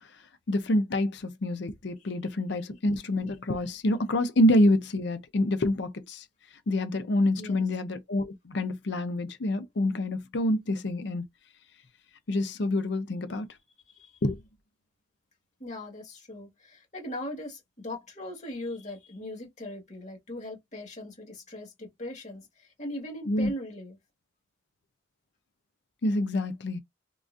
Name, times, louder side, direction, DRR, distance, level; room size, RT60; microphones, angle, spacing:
voice 1, 0.5-6.2 6.7-11.2 12.3-13.5 14.2-14.4 23.3-23.5 26.0-26.8, left 1 dB, 60° left, 0.6 m, -27 dB
voice 2, 2.0-2.3 7.3-7.6 13.9-14.2 15.6-24.0, left 1 dB, 35° left, 1.6 m, -40 dB
3.7 x 2.4 x 2.5 m
head